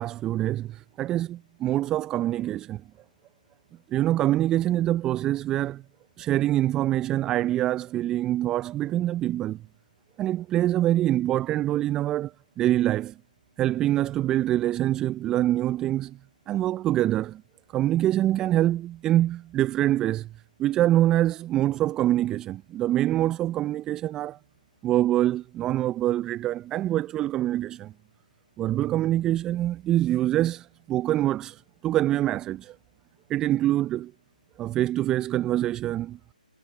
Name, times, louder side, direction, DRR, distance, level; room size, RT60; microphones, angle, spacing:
voice 1, 0.0-2.8 3.9-5.8 6.2-9.6 10.2-12.3 12.6-13.1 13.6-16.2 16.5-17.4 17.7-20.3 20.6-24.4 24.8-27.9 28.6-32.8 33.3-34.1 34.6-36.2, right 13 dB, 15° right, 0.7 m, -25 dB
figure-of-eight pair, 145°, 5 cm